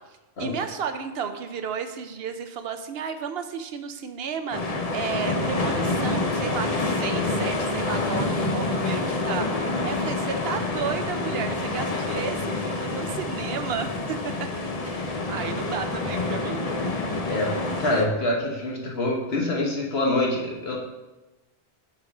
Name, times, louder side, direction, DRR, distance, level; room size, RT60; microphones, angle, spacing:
voice 1, 0.4-14.5 14.8-16.7, right 6 dB, 70° right, 8 dB, 0.8 m, -33 dB
sound 1, 4.5-18.0, left 2 dB, 40° left, 0.7 m, -27 dB
voice 2, 17.8-20.8, left 1 dB, 70° left, -2 dB, 1.6 m, -25 dB
6.5 x 3.9 x 6.0 m, 1.1 s
omnidirectional pair, 1.1 m